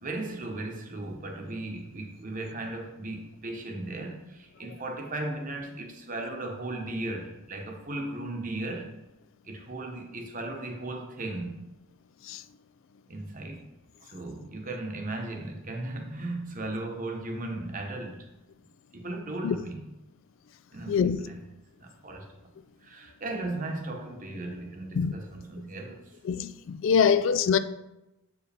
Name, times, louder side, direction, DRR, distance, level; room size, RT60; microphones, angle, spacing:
voice 1, 0.0-8.9 9.5-11.5 13.1-13.6 14.0-18.3 18.9-19.8 20.7-21.4 21.8-22.3 22.8-26.0, right 2 dB, 35° right, 0.9 m, -36 dB
voice 2, 20.9-21.2 25.0-25.1 26.2-27.6, left 7 dB, 60° left, 0.3 m, -24 dB
7.8 x 4.8 x 3.4 m
head